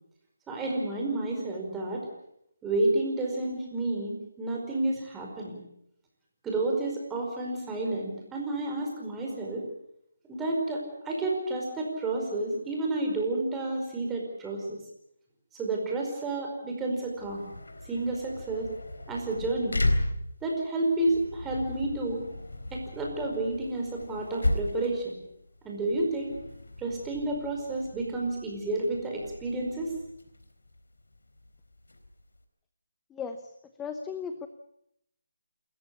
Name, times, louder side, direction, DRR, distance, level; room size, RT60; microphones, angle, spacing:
voice 1, 0.5-2.1 2.6-5.6 6.4-9.6 10.3-14.8 15.5-17.5 17.8-18.7 19.1-19.8 20.4-22.3 22.7-25.2 25.6-26.3 26.8-29.9, right 2 dB, 10° right, -1 dB, 5.0 m, -30 dB
sound 1, 17.0-32.4, left 1 dB, 85° left, 3.9 m, -36 dB
voice 2, 33.1-33.5 33.8-34.5, left 6 dB, 10° left, 8 dB, 0.9 m, -36 dB
27.5 x 14.5 x 8.5 m, 0.76 s
figure-of-eight pair, 160°, 0 cm